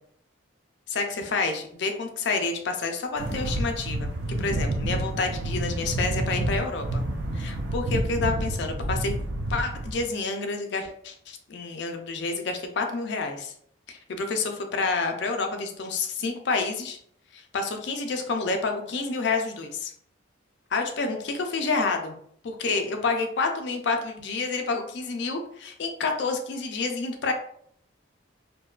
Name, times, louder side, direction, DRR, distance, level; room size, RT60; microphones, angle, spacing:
voice 1, 0.9-7.0 7.3-9.1 9.5-13.5 13.9-17.0 17.3-19.9 20.7-22.1 22.4-27.3, left 4 dB, 60° left, 4 dB, 0.4 m, -29 dB
sound 1, 3.2-10.1, right 1 dB, 60° right, 0.3 m, -29 dB
2.6 x 2.2 x 2.3 m, 0.65 s
head